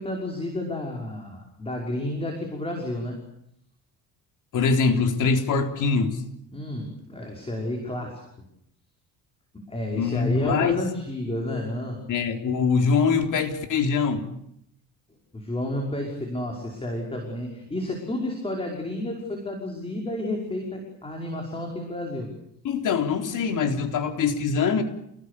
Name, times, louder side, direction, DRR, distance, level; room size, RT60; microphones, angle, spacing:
voice 1, 0.0-3.2 6.5-8.2 9.5-12.0 15.3-22.3, left 1 dB, 15° left, 1 dB, 5.7 m, -31 dB
voice 2, 4.5-6.2 10.0-10.8 12.1-14.3 22.6-24.8, left 5 dB, 60° left, 4 dB, 4.0 m, -23 dB
28.5 x 20.0 x 8.6 m, 0.75 s
cardioid pair, 120°, 35 cm